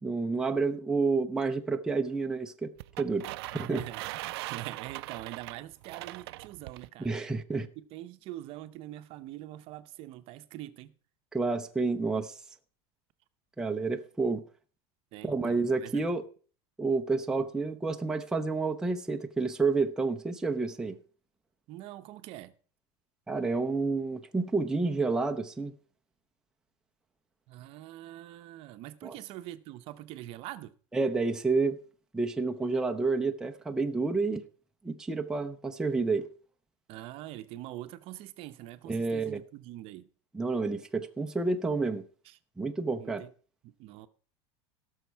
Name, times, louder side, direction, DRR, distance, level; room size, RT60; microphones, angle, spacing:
voice 1, 0.0-2.7 3.0-3.8 7.0-7.7 11.3-12.4 13.6-14.4 15.2-16.2 16.8-21.0 23.3-25.7 29.0-29.1 30.9-31.8 32.1-34.4 34.8-36.3 38.9-39.4 40.3-42.0 42.6-43.2, right 3 dB, 5° right, 0.6 m, -29 dB
sound 1, 2.8-6.9, right 19 dB, 75° right, 0.5 m, -40 dB
voice 2, 3.5-7.2 7.6-10.9 15.1-16.0 21.7-22.5 27.5-30.7 36.9-40.1 42.2-42.4 43.0-43.3 43.6-44.1, right 14 dB, 45° right, 0.8 m, -44 dB
17.0 x 6.4 x 4.6 m
supercardioid pair, 155°, 13 cm